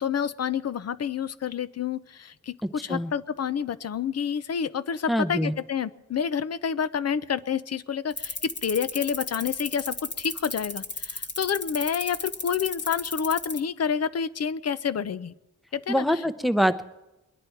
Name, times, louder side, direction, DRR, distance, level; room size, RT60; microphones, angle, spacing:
voice 1, 0.0-15.3 15.7-16.0, left 7 dB, 50° left, 16 dB, 0.6 m, -29 dB
voice 2, 2.6-3.1 5.1-5.5 15.9-16.9, equal, ahead, 11 dB, 0.7 m, -25 dB
sound 1, 8.1-13.6, left 3 dB, 35° left, 1.2 m, -33 dB
22.0 x 10.5 x 4.5 m, 0.95 s
cardioid pair, 90°, 32 cm